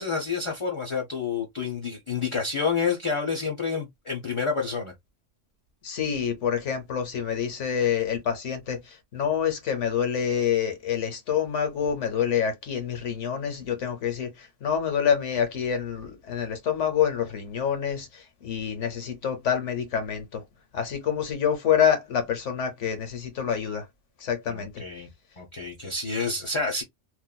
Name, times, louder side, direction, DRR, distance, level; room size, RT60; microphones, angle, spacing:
voice 1, 0.0-4.9 24.5-25.1 25.4-26.8, left 5 dB, 30° left, 0.6 m, -29 dB
voice 2, 5.8-20.4 20.7-23.9 24.2-24.7, left 8 dB, 80° left, 1.3 m, -27 dB
2.9 x 2.5 x 2.3 m
omnidirectional pair, 1.2 m